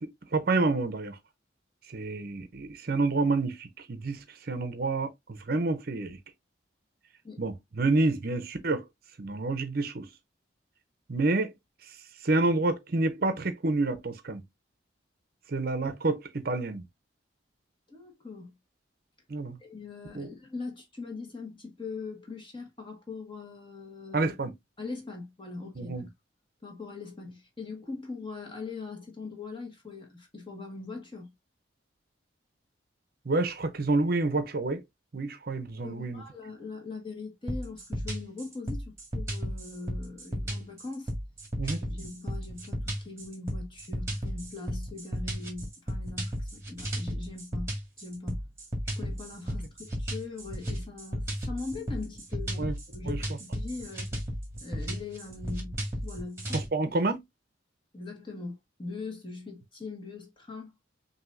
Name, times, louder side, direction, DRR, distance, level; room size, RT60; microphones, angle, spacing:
voice 1, 0.0-1.2 1.9-6.2 7.4-8.8 9.2-10.1 11.1-11.5 12.2-14.4 15.5-16.8 19.3-19.6 20.1-20.3 24.1-24.5 25.8-26.1 33.3-34.8 35.1-36.2 41.6-41.8 52.6-52.7 53.1-53.2 56.5-57.2, right 3 dB, 50° right, 0.6 m, -28 dB
voice 2, 17.9-18.5 19.6-24.3 24.8-26.1 26.6-31.3 35.8-41.1 41.6-48.4 49.0-54.1 54.6-56.9 57.9-60.7, left 3 dB, 25° left, 1.5 m, -41 dB
sound 1, 37.5-56.7, equal, 15° right, 1.7 m, -34 dB
5.9 x 2.7 x 2.5 m
head